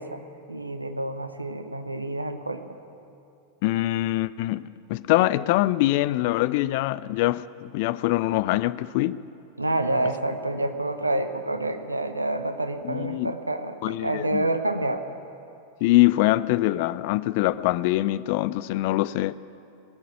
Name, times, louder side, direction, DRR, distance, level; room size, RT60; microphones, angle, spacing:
voice 1, 0.0-2.8 9.6-15.0, right 1 dB, 85° right, 0.8 m, -28 dB
voice 2, 3.6-9.2 12.8-13.3 13.8-14.5 15.8-19.4, left 17 dB, 50° left, 0.4 m, -23 dB
19.0 x 6.7 x 9.0 m
figure-of-eight pair, 90°, 0 cm